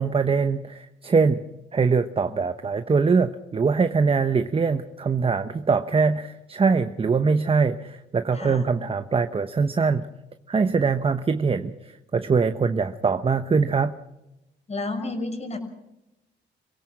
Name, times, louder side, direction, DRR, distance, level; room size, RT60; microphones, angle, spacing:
voice 1, 0.0-1.4 1.7-10.1 10.5-13.9, right 5 dB, 30° right, 9 dB, 0.9 m, -23 dB
voice 2, 14.7-15.6, left 2 dB, 35° left, 5 dB, 5.9 m, -31 dB
26.0 x 17.0 x 6.3 m, 0.92 s
cardioid pair, 90°, 20 cm